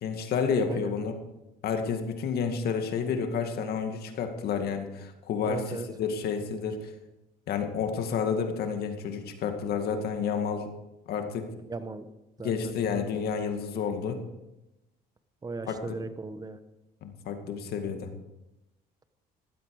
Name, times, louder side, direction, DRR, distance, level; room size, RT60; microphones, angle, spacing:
voice 1, 0.0-1.1 1.6-6.9 7.5-10.7 11.1-11.5 12.4-14.2 15.7-16.0 17.0-18.1, left 6 dB, 70° left, 5 dB, 2.1 m, -30 dB
voice 2, 5.5-5.9 11.7-12.1 12.4-12.8 15.4-16.6, right 3 dB, 20° right, 11 dB, 1.2 m, -37 dB
15.0 x 12.5 x 4.8 m, 0.95 s
cardioid pair, 110°, 17 cm